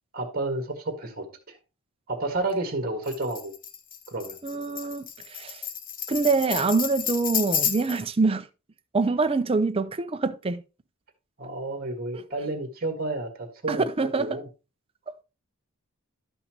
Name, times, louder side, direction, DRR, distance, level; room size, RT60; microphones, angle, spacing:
voice 1, 0.1-1.6 2.1-3.5 4.1-4.4 11.4-14.5, right 2 dB, 45° right, 1.5 m, -31 dB
Tambourine, 3.1-8.1, left 8 dB, 40° left, 0.9 m, -31 dB
voice 2, 4.4-5.6 6.1-8.5 8.9-10.6 12.1-12.5 13.7-14.4, right 3 dB, 25° right, 0.5 m, -25 dB
12.0 x 5.5 x 2.8 m
head